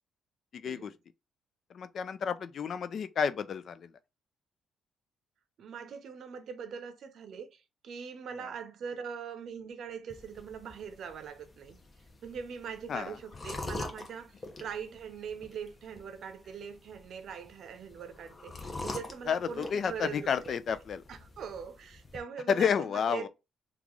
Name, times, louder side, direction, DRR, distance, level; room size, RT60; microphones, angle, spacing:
voice 1, 0.5-0.9 1.7-4.0 8.4-8.5 12.9-13.2 19.3-21.0 22.5-23.3, left 7 dB, 55° left, 0.3 m, -31 dB
voice 2, 5.6-11.8 12.2-20.5 21.1-23.3, right 6 dB, 65° right, 0.6 m, -42 dB
sound 1, 10.1-22.2, left 2 dB, 30° left, 0.8 m, -45 dB
3.0 x 2.4 x 3.7 m
cardioid pair, 90°, 0 cm